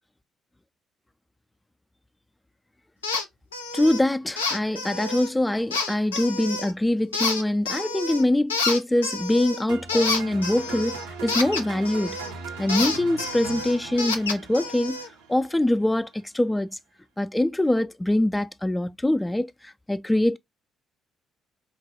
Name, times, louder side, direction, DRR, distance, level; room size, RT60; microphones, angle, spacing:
sound 1, 3.0-3.2 3.5-4.0 4.4-5.3 5.7-6.7 7.1-8.2 8.5-12.3 12.7-15.1, left 4 dB, 80° left, 0.4 m, -29 dB
voice 1, 3.7-12.2 12.6-15.0 15.3-16.7 17.2-20.4, left 1 dB, 10° left, 0.3 m, -24 dB
sound 2, 9.7-15.8, right 5 dB, 70° right, 0.6 m, -39 dB
4.3 x 2.2 x 2.7 m
figure-of-eight pair, 45°, 0 cm